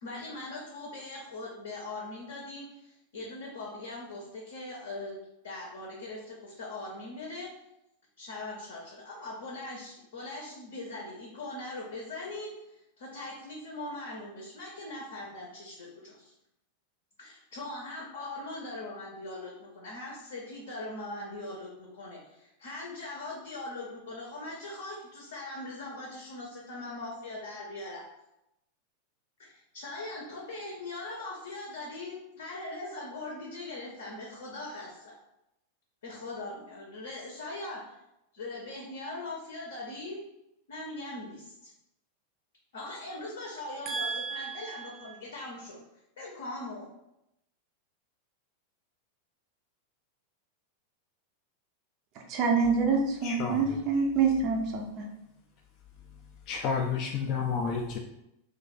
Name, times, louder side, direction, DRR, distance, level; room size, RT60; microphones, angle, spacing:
voice 1, 0.0-5.2 5.4-7.5 8.2-16.3 17.2-28.0 29.4-35.1 36.0-37.9 38.3-40.2 40.7-41.7 42.7-45.8 46.2-46.9, left 2 dB, 65° left, 0.7 m, -41 dB
voice 2, 43.9-44.9 52.3-55.1, right 5 dB, 40° right, 0.4 m, -27 dB
voice 3, 53.2-53.8 56.5-58.0, left 5 dB, 40° left, 0.3 m, -31 dB
2.3 x 2.3 x 4.0 m
figure-of-eight pair, 90°, 0 cm